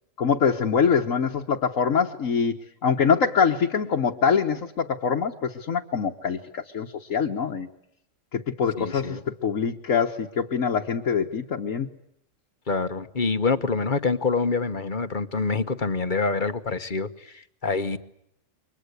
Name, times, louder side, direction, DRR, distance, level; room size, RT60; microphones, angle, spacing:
voice 1, 0.2-2.5 2.8-7.7 8.3-11.9, left 6 dB, 80° left, 0 dB, 1.7 m, -24 dB
voice 2, 8.8-9.2 12.7-18.0, left 4 dB, 40° left, 10 dB, 1.3 m, -26 dB
29.0 x 24.0 x 8.2 m, 0.75 s
omnidirectional pair, 1.4 m